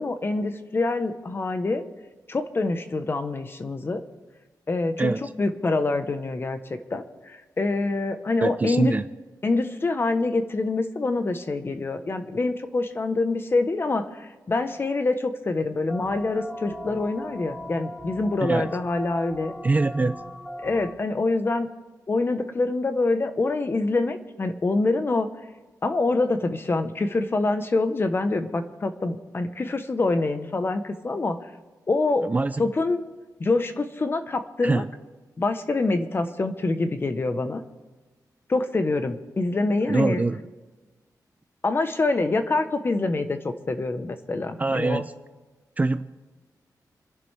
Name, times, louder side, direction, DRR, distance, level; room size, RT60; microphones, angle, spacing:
voice 1, 0.0-1.8 2.3-4.0 4.7-5.1 5.4-6.6 6.9-8.9 9.4-19.5 20.6-21.7 22.1-25.3 25.8-31.4 31.9-32.3 32.6-33.0 33.4-34.8 35.4-37.6 38.5-40.2 41.6-45.0, left 3 dB, 35° left, 9 dB, 0.9 m, -25 dB
voice 2, 5.0-5.3 8.4-9.0 18.4-18.7 19.6-20.2 32.2-32.7 34.6-34.9 39.9-40.4 44.6-45.1 45.8-46.0, right 3 dB, 25° right, 12 dB, 0.4 m, -23 dB
sound 1, 15.9-20.9, equal, 5° left, 1.2 m, -38 dB
28.0 x 11.0 x 3.4 m, 1.2 s
wide cardioid pair, 165°, 7 cm